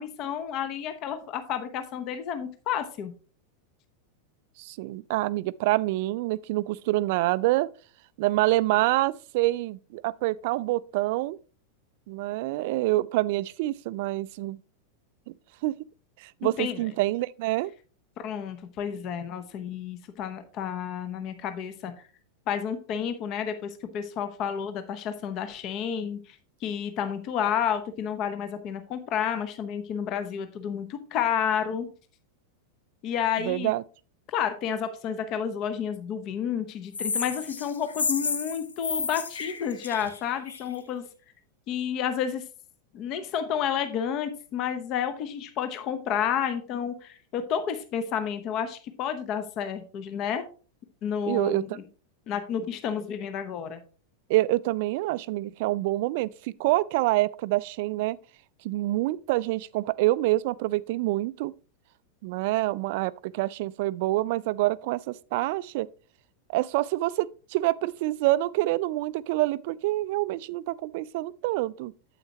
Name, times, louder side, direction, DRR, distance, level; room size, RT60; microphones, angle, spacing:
voice 1, 0.0-3.1 16.6-16.9 18.2-21.9 22.5-26.4 26.6-31.9 33.0-33.7 34.3-41.0 41.7-42.4 42.9-50.4 51.0-51.8 52.3-53.8, left 8 dB, 40° left, 0.9 m, -30 dB
voice 2, 4.6-7.7 8.2-11.4 12.1-14.6 15.3-15.4 15.6-15.8 16.2-17.7 33.4-33.8 51.3-51.7 54.3-58.2 58.6-61.5 62.2-65.9 66.5-71.9, right 18 dB, 50° right, 0.3 m, -26 dB
sound 1, 36.9-40.7, left 4 dB, 75° left, 0.8 m, -31 dB
8.8 x 7.8 x 2.9 m
figure-of-eight pair, 90°, 0 cm